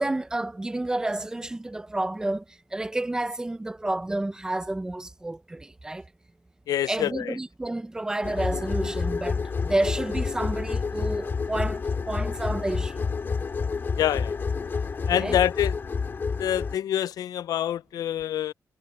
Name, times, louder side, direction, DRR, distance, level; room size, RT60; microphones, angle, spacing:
voice 1, 0.0-2.4 2.7-6.0 6.9-13.1 15.1-15.4, right 2 dB, 10° right, 0.6 m, -30 dB
voice 2, 6.7-7.3 14.0-14.4 15.1-15.7 16.4-18.5, left 11 dB, 90° left, 0.5 m, -26 dB
sound 1, 8.2-16.8, left 5 dB, 35° left, 2.2 m, -29 dB
wide cardioid pair, 160°, 6 cm